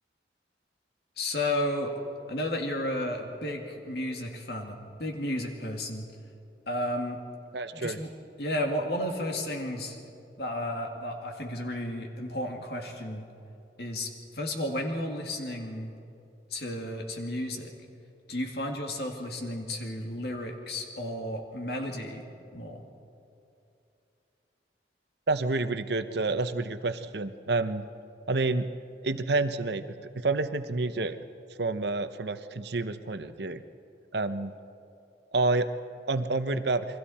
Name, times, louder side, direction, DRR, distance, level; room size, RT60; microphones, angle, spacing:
voice 1, 1.2-1.9 2.3-6.1 6.7-7.2 7.7-8.1 8.4-10.0 10.4-13.3 13.8-15.9 16.5-17.7 18.3-22.3 22.5-22.8, left 1 dB, 60° left, 2 dB, 2.3 m, -33 dB
voice 2, 7.5-8.0 25.3-27.8 28.3-28.7 29.0-29.8 30.2-31.2 31.6-33.6 34.1-34.5 35.3-35.7 36.1-36.9, right 3 dB, 70° right, 10 dB, 0.8 m, -28 dB
28.5 x 22.5 x 4.3 m, 2.7 s
head